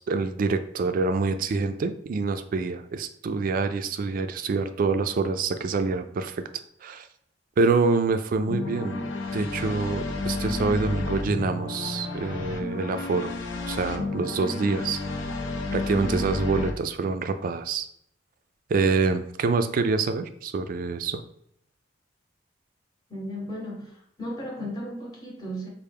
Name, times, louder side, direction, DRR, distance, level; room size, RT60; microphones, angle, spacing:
voice 1, 0.0-6.4 6.8-7.1 7.6-13.3 13.7-15.0 15.7-17.9 18.7-21.2, right 4 dB, 50° right, 10 dB, 0.3 m, -26 dB
sound 1, 8.5-16.7, left 2 dB, 85° left, 0.5 m, -31 dB
voice 2, 23.1-25.7, equal, 20° left, -2 dB, 0.9 m, -35 dB
4.4 x 2.1 x 3.4 m, 0.69 s
head